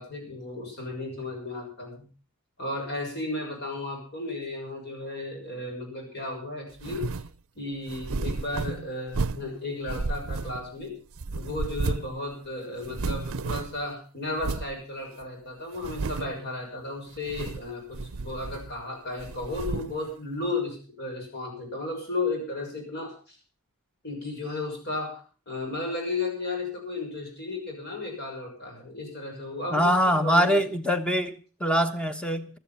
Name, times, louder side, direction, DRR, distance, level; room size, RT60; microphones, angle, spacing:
voice 1, 0.0-2.1 2.6-7.2 7.5-10.9 11.3-23.4 24.0-30.6, left 2 dB, 50° left, 1 dB, 6.4 m, -34 dB
sound 1, 6.8-7.3 7.9-9.5 9.9-10.8 11.2-12.2 12.4-12.5 12.8-13.8 14.4-14.7 15.2-15.3 15.7-16.4 17.2-17.7 17.9-18.8 19.2-20.0, right 3 dB, 65° right, 0.6 m, -32 dB
voice 2, 29.7-32.6, equal, 5° left, 8 dB, 1.2 m, -24 dB
15.5 x 13.0 x 5.7 m, 0.38 s
head